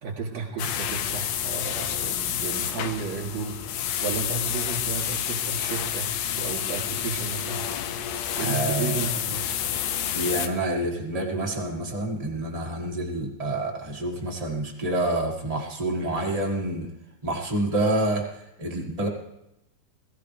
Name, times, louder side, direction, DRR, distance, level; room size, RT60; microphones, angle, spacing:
voice 1, 0.0-3.6 4.0-6.1 6.3-7.6 8.3-9.4, right 5 dB, 55° right, -1 dB, 4.4 m, -33 dB
sound 1, 0.6-10.5, left 10 dB, 80° left, 2.3 m, -29 dB
voice 2, 8.4-9.0 10.1-16.9 17.2-19.1, right 1 dB, 20° right, 0 dB, 1.0 m, -28 dB
21.5 x 14.5 x 3.4 m, 0.87 s
omnidirectional pair, 3.8 m